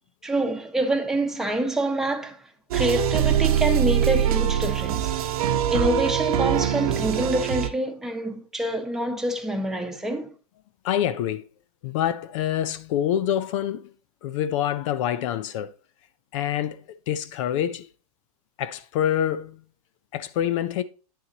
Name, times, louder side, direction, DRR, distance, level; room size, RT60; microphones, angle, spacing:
voice 1, 0.2-2.4 2.7-5.1 5.7-10.3, right 1 dB, ahead, 1.1 m, -26 dB
sound 1, 2.7-7.7, right 10 dB, 70° right, 0.9 m, -23 dB
voice 2, 10.8-11.5 11.8-13.9 14.2-15.7 16.3-17.9 18.6-19.6 20.1-20.8, left 10 dB, 55° left, 0.6 m, -26 dB
9.3 x 7.0 x 2.9 m
hypercardioid pair, 125°, 20 cm